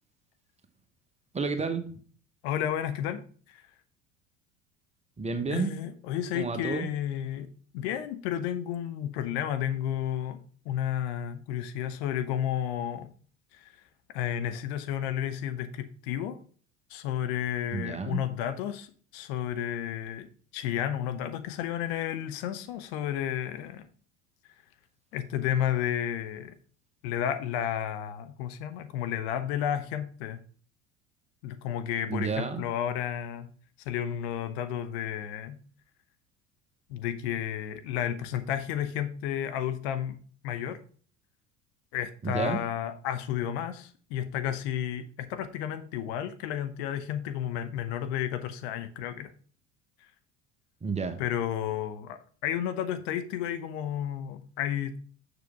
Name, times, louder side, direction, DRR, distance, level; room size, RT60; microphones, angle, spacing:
voice 1, 1.3-1.8 5.2-5.7 6.3-6.9 17.7-18.2 32.1-32.6 42.2-42.6 50.8-51.2, right 4 dB, 15° right, 7 dB, 1.1 m, -30 dB
voice 2, 2.4-3.6 5.5-7.5 7.7-13.1 13.5-13.7 14.1-16.4 16.9-18.9 19.1-23.9 25.1-26.6 27.0-30.4 31.4-33.5 33.9-35.6 36.9-40.2 40.4-40.8 41.9-49.3 51.2-55.0, left 10 dB, 55° left, 9 dB, 0.8 m, -32 dB
6.9 x 6.2 x 3.4 m, 0.42 s
figure-of-eight pair, 65°, 38 cm